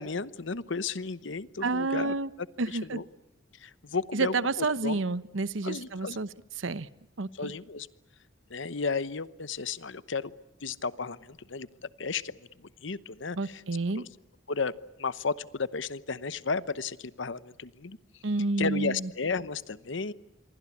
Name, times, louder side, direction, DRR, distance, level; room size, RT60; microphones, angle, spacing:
voice 1, 0.0-3.0 3.5-5.0 5.6-6.2 7.3-7.9 8.5-10.3 10.6-13.6 13.9-14.1 14.5-14.7 15.0-18.0 18.6-20.1, left 4 dB, 70° left, 16 dB, 1.0 m, -34 dB
voice 2, 1.6-2.3 2.6-3.0 4.1-6.3 6.6-6.9 7.2-7.5 13.4-14.0 18.2-19.1, right 3 dB, 80° right, 16 dB, 0.9 m, -29 dB
27.5 x 23.5 x 8.5 m, 0.87 s
head